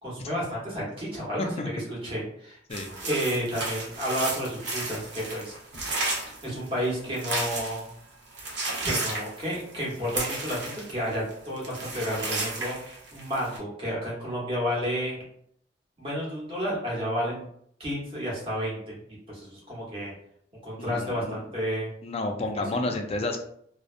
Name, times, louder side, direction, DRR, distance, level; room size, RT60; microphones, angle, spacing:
voice 1, 0.0-2.6 3.0-5.5 6.4-7.9 8.8-12.8 13.1-15.2 16.0-17.5 17.8-18.8 19.3-20.1 20.6-21.9 22.5-22.8, equal, 30° right, -5 dB, 1.0 m, -31 dB
voice 2, 1.4-1.7 2.7-2.9 20.8-21.4 22.0-23.4, left 2 dB, 35° left, 4 dB, 0.4 m, -31 dB
sound 1, 2.7-7.9 8.3-11.3 11.6-13.6, right 2 dB, 90° right, 0.8 m, -33 dB
2.5 x 2.0 x 2.5 m, 0.67 s
head